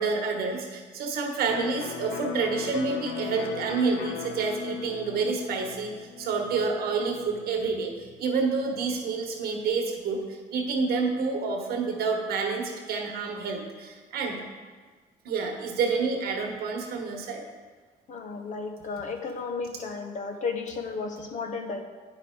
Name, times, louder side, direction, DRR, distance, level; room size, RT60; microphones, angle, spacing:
voice 1, 0.0-14.4 15.2-17.4, right 4 dB, 65° right, 2 dB, 1.3 m, -28 dB
Electric guitar, 1.5-9.1, left 7 dB, 80° left, 0.6 m, -38 dB
voice 2, 18.1-21.8, left 4 dB, 45° left, 5 dB, 0.9 m, -33 dB
9.5 x 5.4 x 3.8 m, 1.4 s
cardioid pair, 110°, 17 cm